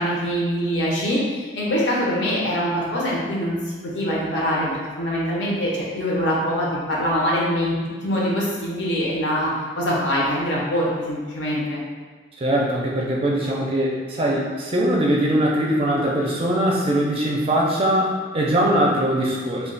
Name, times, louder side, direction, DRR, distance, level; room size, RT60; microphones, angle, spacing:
voice 1, 0.0-7.7 8.0-9.5 9.8-11.8, equal, 70° left, -5 dB, 0.8 m, -23 dB
voice 2, 12.4-19.7, right 1 dB, 30° right, -3 dB, 0.4 m, -21 dB
2.4 x 2.3 x 3.8 m, 1.5 s
head